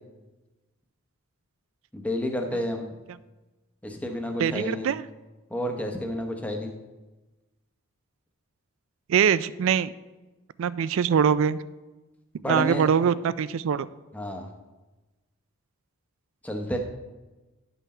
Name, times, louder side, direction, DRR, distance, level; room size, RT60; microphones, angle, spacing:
voice 1, 1.9-2.9 3.8-4.9 5.5-6.7 12.4-12.9 14.1-14.5 16.4-16.8, left 1 dB, 5° left, 3 dB, 0.8 m, -30 dB
voice 2, 4.4-5.0 9.1-9.9 10.6-11.6 12.5-13.9, right 7 dB, 65° right, 17 dB, 0.3 m, -23 dB
10.5 x 5.7 x 4.3 m, 1.1 s
head